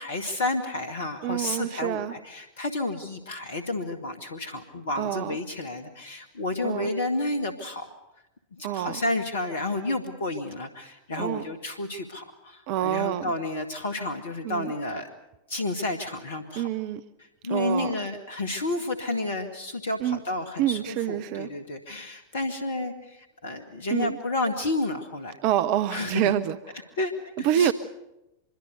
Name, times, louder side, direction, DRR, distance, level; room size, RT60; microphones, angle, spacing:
voice 1, 0.0-7.9 8.5-15.1 15.5-16.7 17.4-25.4 25.9-26.3 27.0-27.7, left 2 dB, 65° left, 8 dB, 1.8 m, -31 dB
voice 2, 1.2-2.1 5.0-5.4 6.6-6.9 8.6-9.0 11.2-11.4 12.7-13.3 14.4-14.7 16.5-17.0 17.5-17.9 20.0-20.2 20.6-21.5 23.9-24.2 25.4-26.6 27.4-27.7, right 11 dB, 45° right, 15 dB, 0.8 m, -27 dB
25.0 x 22.5 x 6.7 m, 0.92 s
figure-of-eight pair, 90°, 0 cm